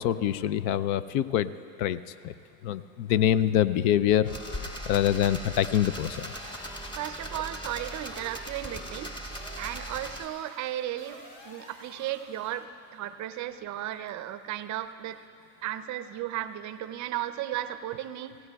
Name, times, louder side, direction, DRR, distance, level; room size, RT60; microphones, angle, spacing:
voice 1, 0.0-1.5 1.8-2.3 2.6-4.3 4.9-6.3, left 11 dB, 65° left, 16 dB, 0.6 m, -25 dB
sound 1, 3.1-5.6 6.8-6.9 7.1-7.2 7.3-7.7 8.2-8.4, left 2 dB, 40° left, 2.3 m, -44 dB
sound 2, 4.3-10.3, right 1 dB, 10° left, 1.3 m, -39 dB
sound 3, 6.0-12.6, left 1 dB, 90° left, 2.5 m, -50 dB
voice 2, 7.0-9.1 9.6-15.2 15.6-18.4, right 12 dB, 40° right, 12 dB, 0.5 m, -35 dB
24.5 x 17.0 x 2.3 m, 2.4 s
hypercardioid pair, 95°, 48 cm